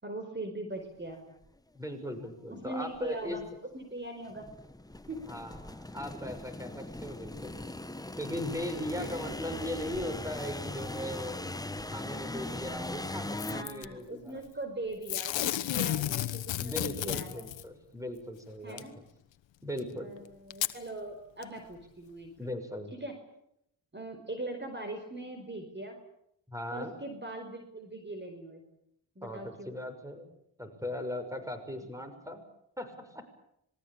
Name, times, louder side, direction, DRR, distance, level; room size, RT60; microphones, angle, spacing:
voice 1, 0.0-1.2 2.5-3.4 3.7-4.5 5.1-5.2 8.9-9.2 13.5-17.4 18.6-18.9 20.0-22.3 23.0-23.1 23.9-26.0 26.7-28.6 29.1-29.7, right 2 dB, 25° right, 5 dB, 5.0 m, -40 dB
sound 1, 1.4-1.5 2.3-2.4 2.9-3.5 4.2-13.6, left 2 dB, 10° left, 1.3 m, -39 dB
voice 2, 1.7-3.4 5.3-7.6 8.2-11.6 11.9-14.4 16.6-18.9 19.6-20.1 22.4-22.9 26.5-27.0 29.2-30.3 30.6-32.4 32.8-33.2, left 1 dB, 5° right, 8 dB, 6.0 m, -39 dB
Packing tape duct tape / Tearing, 13.4-13.9 15.1-17.6 18.8-18.9 19.8-19.9 20.5-20.8 21.4-21.5, left 13 dB, 90° left, 1.2 m, -32 dB
26.5 x 21.0 x 8.8 m, 0.77 s
cardioid pair, 65°, 44 cm